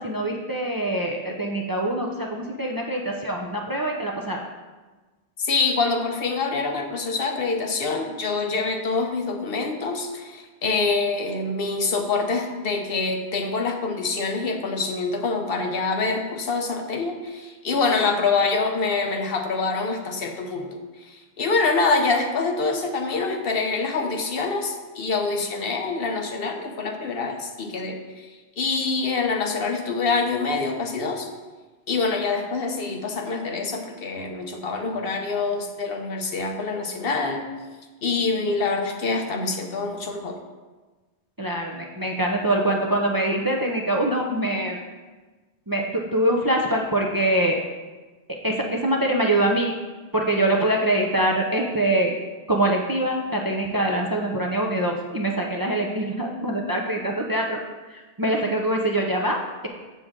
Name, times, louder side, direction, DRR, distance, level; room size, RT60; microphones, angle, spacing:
voice 1, 0.0-4.4 41.4-44.8 45.7-47.6 48.4-49.7 50.1-52.1 52.5-57.6 57.9-59.7, right 1 dB, 25° right, 0 dB, 0.5 m, -24 dB
voice 2, 5.4-31.3 31.9-37.5 38.0-40.4, left 4 dB, 60° left, 4 dB, 1.0 m, -25 dB
7.7 x 6.6 x 3.7 m, 1.3 s
omnidirectional pair, 1.1 m